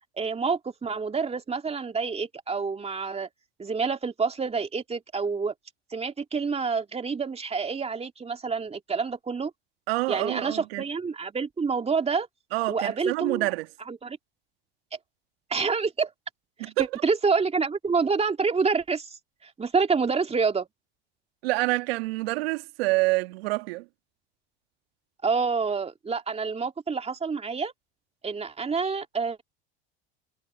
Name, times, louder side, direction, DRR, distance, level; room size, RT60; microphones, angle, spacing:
voice 1, 0.2-3.3 3.6-5.5 5.9-9.5 10.1-12.3 12.7-13.5 13.9-14.2 15.5-16.1 16.6-20.7 25.2-27.7 28.2-29.4, right 5 dB, 20° right, 2.3 m, -28 dB
voice 2, 9.9-10.8 12.5-13.7 16.6-16.9 21.4-23.8, right 23 dB, 70° right, 1.9 m, -27 dB
hypercardioid pair, 90°, 31 cm